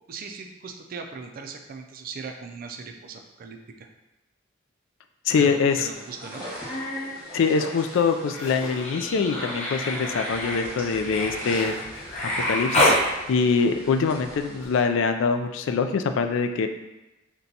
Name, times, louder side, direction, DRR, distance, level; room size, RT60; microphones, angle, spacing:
voice 1, 0.1-3.9 5.4-6.5, right 5 dB, 45° right, 5 dB, 0.4 m, -39 dB
voice 2, 5.3-5.9 7.3-11.7 12.2-13.0 13.3-16.7, left 5 dB, 65° left, 7 dB, 0.3 m, -24 dB
sound 1, 5.9-14.8, equal, 10° right, 1.4 m, -41 dB
Human voice, 6.3-7.1 7.4-13.0 14.6-14.7, left 1 dB, 35° left, 0.9 m, -28 dB
6.6 x 2.3 x 2.8 m, 0.98 s
head